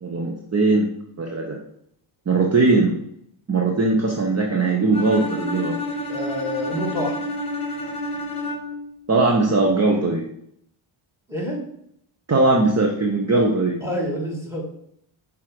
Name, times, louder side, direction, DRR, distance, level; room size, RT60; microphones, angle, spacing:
voice 1, 0.0-0.9 1.2-1.6 2.3-2.9 3.5-5.8 9.1-10.2 12.3-13.8, right 3 dB, 30° right, 1 dB, 1.0 m, -19 dB
Bowed string instrument, 4.9-8.9, left 1 dB, 10° left, 2.0 m, -29 dB
voice 2, 6.1-7.2 11.3-11.6 13.8-14.6, equal, 5° right, -1 dB, 2.7 m, -27 dB
6.3 x 3.8 x 6.0 m, 0.70 s
cardioid pair, 105°, 50 cm